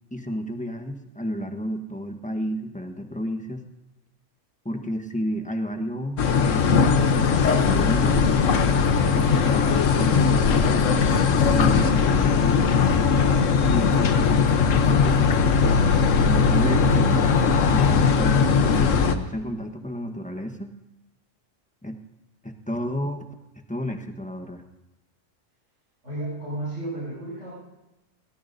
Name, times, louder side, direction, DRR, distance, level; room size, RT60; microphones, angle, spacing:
voice 1, 0.1-3.6 4.6-8.3 9.1-12.7 13.7-16.0 16.3-20.7 21.8-22.0 22.4-23.3 23.6-24.6, equal, 5° left, 5 dB, 1.1 m, -32 dB
sound 1, 6.2-19.2, left 5 dB, 90° left, 1.3 m, -19 dB
voice 2, 26.0-27.5, right 1 dB, 80° right, -8 dB, 7.0 m, -32 dB
23.0 x 17.5 x 2.7 m, 1.0 s
omnidirectional pair, 1.3 m